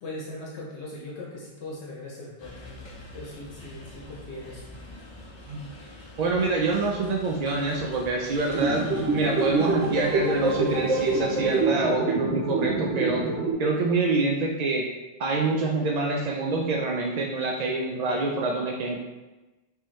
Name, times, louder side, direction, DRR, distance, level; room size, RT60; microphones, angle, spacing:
voice 1, 0.0-4.7, left 2 dB, 75° left, -4 dB, 1.1 m, -40 dB
sound 1, 2.4-11.6, left 1 dB, 25° left, 0.9 m, -45 dB
voice 2, 6.2-8.8 9.1-13.3 13.6-14.8 15.2-19.0, right 3 dB, 60° right, 0 dB, 0.4 m, -26 dB
sound 2, 8.5-13.5, right 3 dB, 85° right, 1.1 m, -26 dB
4.3 x 3.6 x 3.1 m, 1.1 s
omnidirectional pair, 1.2 m